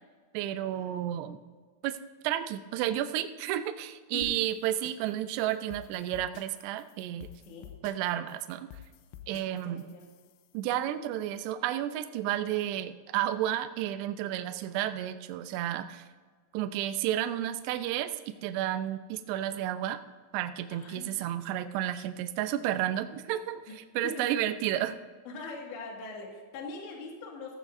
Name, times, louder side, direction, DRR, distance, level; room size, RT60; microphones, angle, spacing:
voice 1, 0.3-1.4 1.8-2.0 2.2-7.3 7.8-8.7 9.3-9.8 10.5-16.1 16.5-18.1 18.4-20.0 20.3-25.0, right 12 dB, 85° right, 9 dB, 2.4 m, -31 dB
sound 1, 4.2-10.6, left 11 dB, 85° left, 3.2 m, -51 dB
voice 2, 9.5-10.0 20.7-21.2 23.7-23.8 24.0-24.2 25.3-27.6, left 3 dB, 65° left, -1 dB, 4.0 m, -42 dB
15.0 x 14.5 x 2.6 m, 1.5 s
omnidirectional pair, 5.7 m